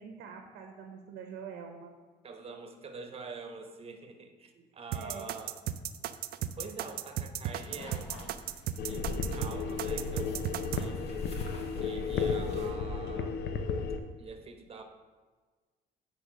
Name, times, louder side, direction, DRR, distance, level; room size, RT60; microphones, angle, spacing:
voice 1, 0.0-1.9 4.9-5.3, right 6 dB, 80° right, 4 dB, 0.9 m, -45 dB
voice 2, 2.2-5.6 6.6-8.3 8.8-11.0 11.7-13.3 14.2-14.8, right 4 dB, 35° right, 6 dB, 1.0 m, -46 dB
sound 1, 4.9-10.8, right 11 dB, 65° right, 0.4 m, -35 dB
sound 2, 7.6-12.7, left 1 dB, 40° left, 1.9 m, -48 dB
sound 3, 8.8-14.0, left 5 dB, 75° left, 0.7 m, -33 dB
8.3 x 3.5 x 6.2 m, 1.4 s
cardioid pair, 110°, 17 cm